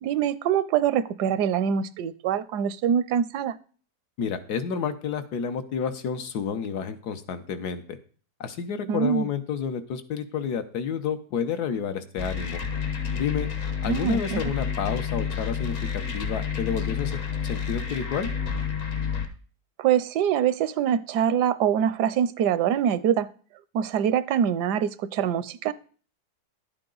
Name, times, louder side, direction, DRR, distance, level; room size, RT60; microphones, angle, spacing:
voice 1, 0.0-3.5 8.9-9.3 13.8-14.5 19.8-23.3 23.7-25.7, right 9 dB, 80° right, 16 dB, 1.2 m, -24 dB
voice 2, 4.2-8.0 8.4-12.6 13.1-13.5 13.8-15.8 16.1-17.1 17.4-18.3, left 7 dB, 70° left, 9 dB, 1.4 m, -30 dB
sound 1, 12.2-19.3, left 7 dB, 55° left, 1.4 m, -29 dB
11.5 x 8.8 x 3.9 m, 0.41 s
omnidirectional pair, 1.8 m